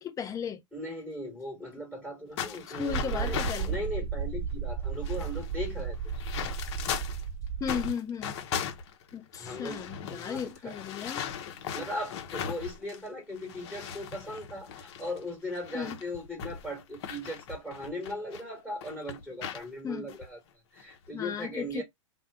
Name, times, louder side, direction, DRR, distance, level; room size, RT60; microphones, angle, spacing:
voice 1, 0.0-0.6 2.7-3.8 7.6-8.3 9.1-11.3 15.7-16.0 19.8-20.1 21.1-21.8, left 7 dB, 20° left, 0.8 m, -35 dB
voice 2, 0.7-3.4 3.6-6.0 6.2-6.4 9.4-9.8 10.1-10.8 11.3-20.4 20.7-21.8, left 1 dB, ahead, 1.5 m, -38 dB
sound 1, 2.4-3.8 4.5-4.6 4.8-7.2 7.6-13.1 13.4-18.4 18.8-19.7 20.1-20.2 20.8-21.1, left 7 dB, 55° left, 0.9 m, -38 dB
sound 2, 2.9-7.9, right 6 dB, 35° right, 0.3 m, -34 dB
2.5 x 2.2 x 3.5 m
hypercardioid pair, 115°, 16 cm